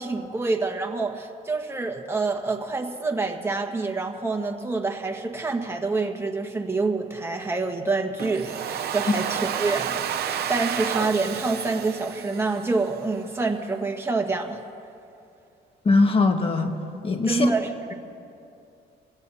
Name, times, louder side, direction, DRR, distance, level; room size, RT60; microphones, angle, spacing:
voice 1, 0.0-14.6 17.3-17.9, right 3 dB, 15° right, 3 dB, 1.5 m, -27 dB
Domestic sounds home sounds, 8.2-13.1, right 9 dB, 70° right, 0.7 m, -30 dB
voice 2, 15.8-16.7 17.0-17.5, left 3 dB, 35° left, 5 dB, 1.5 m, -21 dB
26.0 x 17.0 x 2.8 m, 2.6 s
cardioid pair, 95°, 17 cm